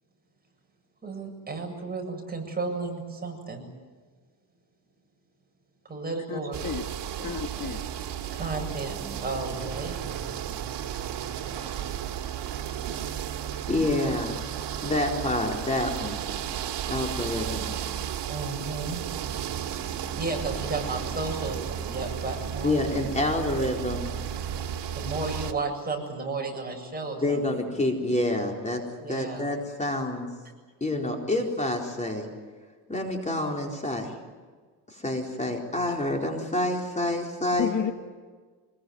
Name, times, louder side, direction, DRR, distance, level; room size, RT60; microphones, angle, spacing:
voice 1, 1.0-3.6 5.9-6.6 8.3-9.9 18.3-19.0 20.2-22.8 25.0-27.6 29.0-29.5, right 3 dB, 20° right, 1 dB, 7.8 m, -33 dB
voice 2, 6.3-6.9 7.2-7.8 37.6-37.9, left 7 dB, 45° left, 5 dB, 1.8 m, -31 dB
sound 1, 6.5-25.5, right 9 dB, 80° right, 2.2 m, -33 dB
voice 3, 13.7-14.4 14.8-16.2 16.9-17.7 22.6-24.1 27.2-28.8 29.1-30.3 30.8-32.3 32.9-34.1 34.9-37.7, left 1 dB, 15° left, 1 dB, 4.2 m, -28 dB
25.5 x 21.5 x 9.5 m, 1.5 s
cardioid pair, 115°, 41 cm